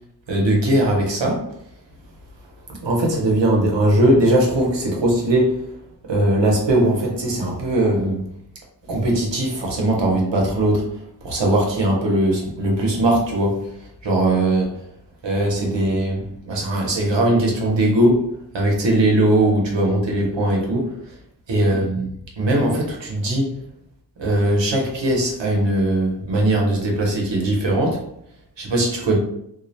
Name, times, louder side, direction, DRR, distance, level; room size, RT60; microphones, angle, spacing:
voice 1, 0.3-1.5 2.7-5.7 6.1-8.3 8.9-14.9 15.2-21.2 21.5-22.1 22.4-23.5 24.2-28.0 28.6-29.2, right 1 dB, 80° right, -1 dB, 0.7 m, -20 dB
2.3 x 2.0 x 2.7 m, 0.72 s
cardioid pair, 40°, 43 cm